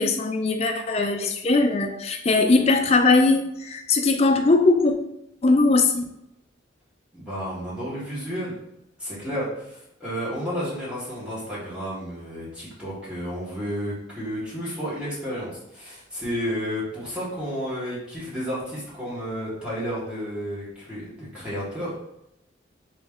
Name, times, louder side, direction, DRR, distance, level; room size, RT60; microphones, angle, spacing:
voice 1, 0.0-5.0 5.4-6.0, left 3 dB, 30° left, 4 dB, 0.4 m, -20 dB
voice 2, 7.1-8.5 9.0-22.0, equal, 5° right, -9 dB, 1.4 m, -32 dB
3.6 x 3.1 x 3.5 m, 0.82 s
head